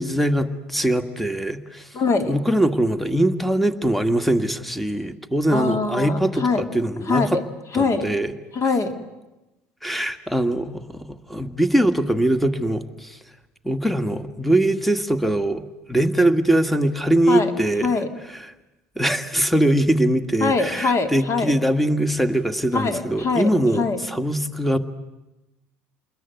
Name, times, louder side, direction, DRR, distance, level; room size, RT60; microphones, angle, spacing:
voice 1, 0.0-1.9 2.3-7.4 7.7-8.3 9.8-13.2 13.6-15.6 15.9-17.9 18.3-18.5 19.0-24.8, right 1 dB, ahead, 10 dB, 1.9 m, -22 dB
voice 2, 1.9-2.3 5.5-6.6 7.1-7.4 7.7-8.0 8.5-8.9 17.3-17.5 17.8-18.1 20.4-21.6 22.7-24.0, left 4 dB, 45° left, 7 dB, 3.3 m, -23 dB
28.5 x 21.5 x 9.4 m, 1.0 s
hypercardioid pair, 75°, 7 cm